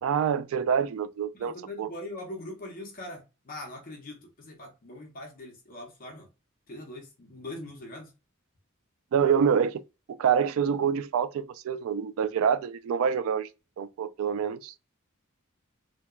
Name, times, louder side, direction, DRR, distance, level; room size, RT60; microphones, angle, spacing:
voice 1, 0.0-1.9 9.1-9.8 10.2-13.5 13.8-14.7, right 7 dB, 65° right, 0.3 m, -26 dB
voice 2, 1.3-6.3 6.7-8.1, left 1 dB, 45° left, 0.7 m, -42 dB
2.8 x 2.2 x 2.2 m
head